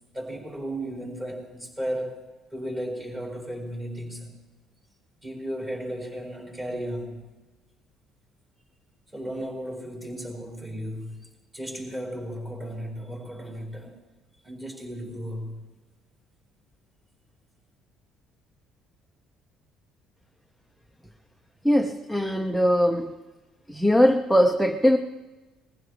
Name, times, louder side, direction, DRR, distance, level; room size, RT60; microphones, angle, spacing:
voice 1, 0.1-2.2 2.5-4.3 5.2-7.3 9.1-14.0 14.4-15.6, equal, 20° right, -2 dB, 4.2 m, -35 dB
voice 2, 21.6-23.1 23.7-25.0, equal, ahead, 6 dB, 0.6 m, -21 dB
21.0 x 15.0 x 3.2 m, 1.2 s
cardioid pair, 130°, 0 cm